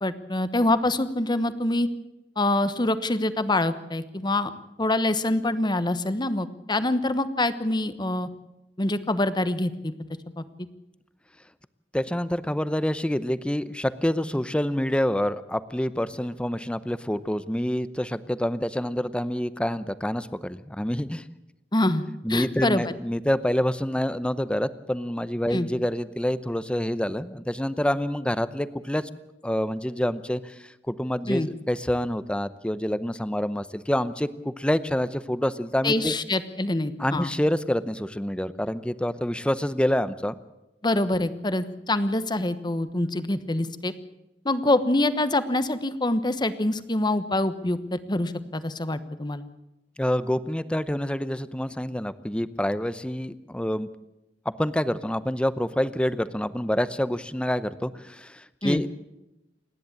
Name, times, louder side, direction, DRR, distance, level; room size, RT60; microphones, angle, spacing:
voice 1, 0.0-1.9 2.4-4.5 4.8-8.3 8.8-9.9 10.4-10.5 21.7-22.0 22.3-22.9 25.5-25.7 31.3-31.5 35.8-37.3 40.8-43.9 44.4-49.4 58.6-58.8, left 2 dB, 25° left, 12 dB, 1.1 m, -25 dB
voice 2, 11.9-21.2 22.2-29.1 29.4-36.1 37.0-40.3 50.0-53.9 54.4-58.9, equal, 5° left, 14 dB, 0.7 m, -27 dB
28.0 x 11.0 x 8.6 m, 0.94 s
head